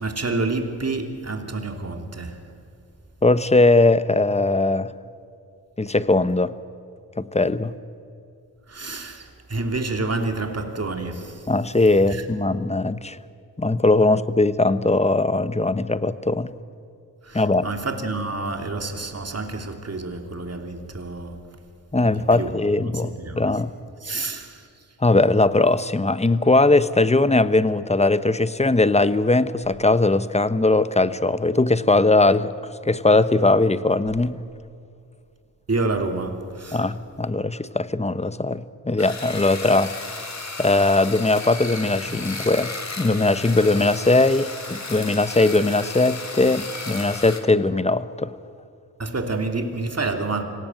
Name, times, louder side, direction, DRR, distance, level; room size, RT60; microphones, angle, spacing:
voice 1, 0.0-2.4 8.7-11.5 12.1-12.2 17.2-21.4 22.0-23.5 24.0-24.6 35.7-36.8 49.0-50.4, right 3 dB, 40° right, 3.2 m, -28 dB
voice 2, 3.2-4.9 5.8-6.5 7.2-7.7 11.5-13.2 13.6-16.5 17.3-17.7 21.9-23.7 24.1-24.2 25.0-32.5 32.8-34.4 36.7-39.9 40.6-48.3, left 2 dB, 15° left, 1.0 m, -20 dB
sound 1, 39.0-47.4, left 3 dB, 45° left, 3.1 m, -34 dB
25.5 x 18.0 x 7.8 m
cardioid pair, 50°, 40 cm